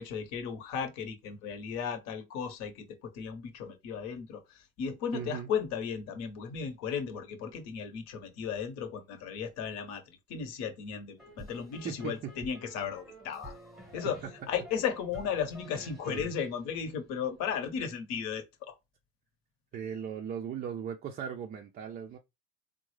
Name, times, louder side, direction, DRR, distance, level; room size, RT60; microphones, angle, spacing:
voice 1, 0.0-13.5 13.9-14.2 14.5-18.7, left 7 dB, 60° left, 1.0 m, -35 dB
voice 2, 5.1-5.5 11.8-12.3 16.1-16.3 19.7-22.2, right 8 dB, 30° right, 0.3 m, -38 dB
sound 1, 11.2-17.5, equal, ahead, 0.9 m, -50 dB
3.5 x 2.1 x 3.1 m
cardioid pair, 130°, 32 cm